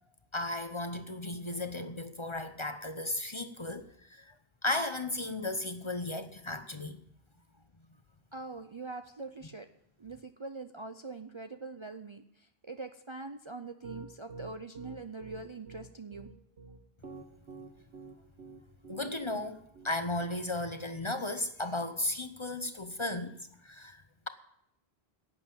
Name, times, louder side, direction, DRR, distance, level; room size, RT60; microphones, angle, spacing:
voice 1, 0.3-4.3 4.6-7.0 18.9-23.3 23.6-24.3, left 2 dB, 30° left, 0.7 m, -35 dB
voice 2, 8.3-9.7 10.0-16.3, right 3 dB, 35° right, 0.5 m, -43 dB
Piano, 13.8-20.3, right 3 dB, 80° right, 1.5 m, -47 dB
11.0 x 8.0 x 8.7 m
omnidirectional pair, 1.1 m